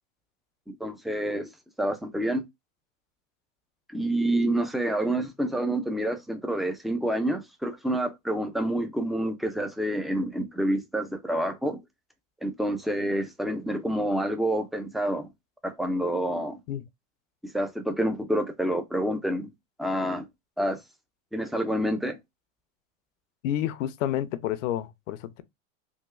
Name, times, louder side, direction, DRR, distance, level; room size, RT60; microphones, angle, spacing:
voice 1, 0.8-1.5 1.8-2.4 3.9-11.8 12.4-15.3 15.6-16.6 17.4-19.5 19.8-20.3 20.6-20.8 21.3-22.2, right 1 dB, ahead, 0.4 m, -28 dB
voice 2, 23.4-25.4, left 11 dB, 70° left, 0.7 m, -29 dB
3.6 x 2.2 x 3.1 m
supercardioid pair, 115°, 38 cm